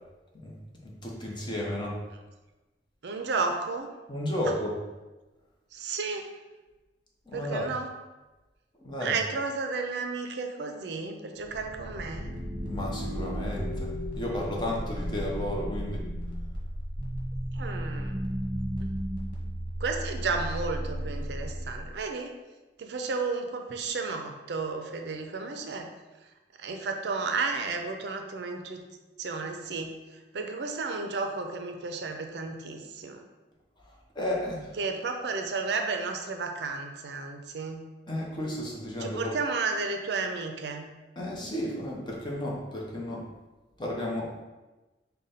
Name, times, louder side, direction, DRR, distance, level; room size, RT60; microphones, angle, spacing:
voice 1, 0.8-2.0 4.1-4.7 7.3-7.7 8.8-9.2 12.6-16.1 34.1-34.7 38.1-39.3 41.2-43.2 43.8-44.4, left 1 dB, 25° left, -2 dB, 0.8 m, -33 dB
voice 2, 3.0-3.9 4.5-4.6 5.7-6.3 7.3-7.9 9.0-12.3 17.5-18.2 18.8-18.9 19.8-22.3 22.8-25.9 26.6-28.8 29.2-33.2 34.8-37.9 39.0-40.9, right 4 dB, 65° right, 4 dB, 0.5 m, -33 dB
sound 1, 11.4-22.0, equal, 30° right, 1.0 m, -34 dB
5.1 x 2.2 x 4.0 m, 1.1 s
head